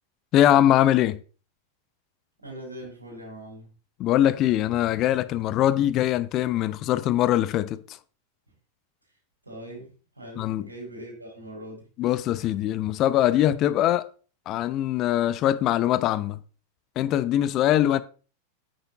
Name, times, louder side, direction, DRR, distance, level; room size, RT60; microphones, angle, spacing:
voice 1, 0.3-1.2 4.0-7.8 10.4-10.6 12.0-14.1 14.5-16.4 17.0-18.0, left 12 dB, 35° left, 0.7 m, -22 dB
voice 2, 2.4-3.7 9.4-9.9 10.1-11.9, right 1 dB, 80° right, 6.0 m, -41 dB
9.6 x 9.1 x 3.0 m
figure-of-eight pair, 90°, 0 cm